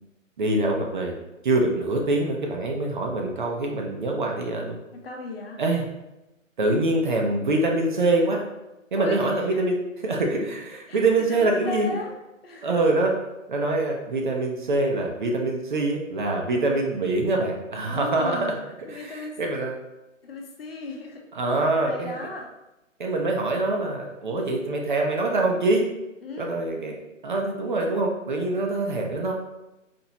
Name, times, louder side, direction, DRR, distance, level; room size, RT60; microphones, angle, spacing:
voice 1, 0.4-1.2 1.4-4.7 5.6-5.8 6.6-8.4 8.9-9.7 10.0-12.0 12.6-13.1 13.5-18.5 18.9-19.8 21.3-22.2 23.0-25.9 26.4-27.0 27.2-29.3, right 2 dB, 40° right, 1 dB, 0.6 m, -24 dB
voice 2, 5.0-5.6 9.0-9.7 10.9-11.0 11.3-12.8 17.9-19.4 20.2-21.2 21.5-22.5 26.2-26.5, left 3 dB, 45° left, 1 dB, 0.8 m, -36 dB
4.2 x 3.0 x 2.9 m, 0.97 s
figure-of-eight pair, 140°, 39 cm